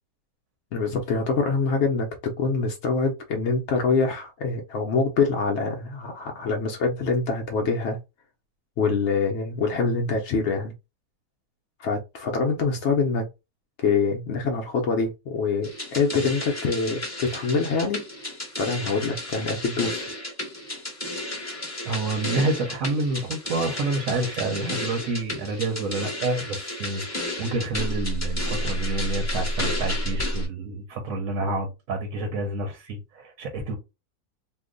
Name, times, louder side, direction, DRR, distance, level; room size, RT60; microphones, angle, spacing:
voice 1, 0.7-8.0 8.8-10.7 11.8-13.3 13.8-18.0 18.6-20.1, left 4 dB, 85° left, 0.6 m, -25 dB
sound 1, 15.6-30.5, left 1 dB, 15° left, 0.5 m, -31 dB
voice 2, 21.8-33.8, right 2 dB, 60° right, 1.0 m, -28 dB
2.9 x 2.1 x 3.7 m
omnidirectional pair, 1.8 m